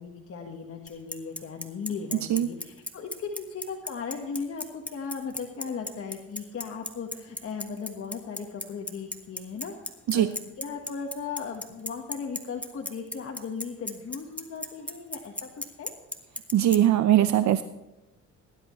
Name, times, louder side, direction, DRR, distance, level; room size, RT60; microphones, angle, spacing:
voice 1, 0.0-9.7 10.1-10.3 10.6-15.9, left 5 dB, 50° left, 0 dB, 1.6 m, -37 dB
Bicycle, 0.9-16.8, left 1 dB, 5° left, 1.5 m, -34 dB
voice 2, 16.5-17.6, right 11 dB, 65° right, 11 dB, 0.7 m, -21 dB
18.5 x 11.5 x 3.2 m, 0.99 s
cardioid pair, 90°, 30 cm